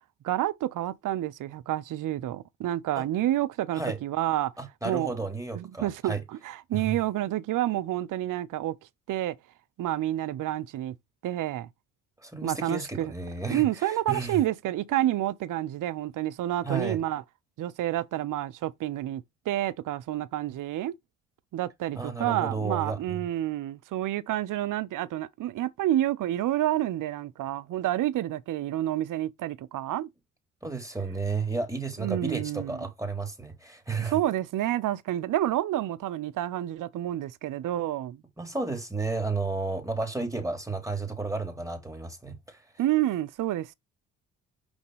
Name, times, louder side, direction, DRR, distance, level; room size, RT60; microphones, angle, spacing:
voice 1, 0.2-4.5 4.8-5.2 5.5-8.7 9.1-9.4 9.8-10.9 11.2-11.7 12.4-13.1 13.5-17.2 17.6-20.9 21.5-30.1 32.0-32.8 34.1-38.2 42.8-43.7, right 13 dB, 50° right, 0.7 m, -29 dB
voice 2, 4.6-6.2 6.7-7.0 12.2-13.7 14.1-14.4 16.6-17.0 22.0-23.2 30.6-34.2 38.4-42.6, right 3 dB, 10° right, 3.6 m, -32 dB
6.2 x 5.2 x 3.3 m
hypercardioid pair, 55°, 40 cm